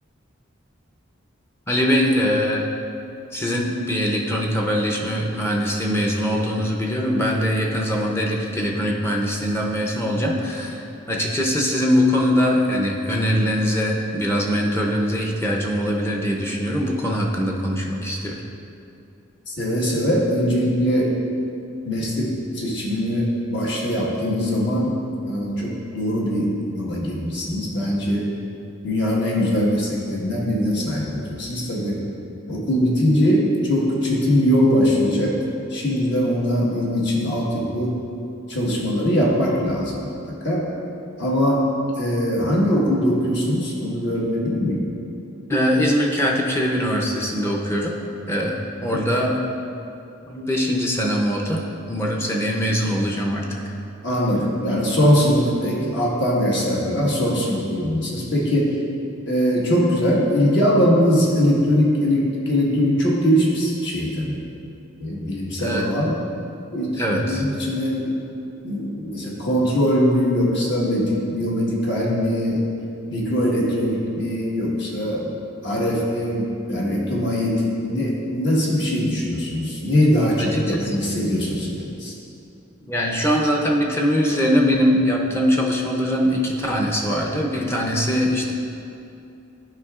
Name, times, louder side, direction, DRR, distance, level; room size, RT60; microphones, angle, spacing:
voice 1, 1.7-2.7 3.3-18.4 45.5-48.0 48.3-49.4 50.3-53.5 65.6-65.9 67.0-67.4 80.4-80.8 82.9-88.5, equal, 15° left, -1 dB, 0.5 m, -22 dB
voice 2, 19.5-21.1 21.8-25.0 25.2-28.3 28.8-32.0 32.5-35.4 35.7-38.0 38.5-40.6 41.2-41.7 41.9-44.8 54.0-58.7 59.3-64.4 65.0-66.1 66.7-68.2 68.6-72.6 73.1-75.3 75.6-82.1, equal, 60° left, -4 dB, 1.4 m, -21 dB
11.5 x 4.7 x 2.4 m, 2.7 s
head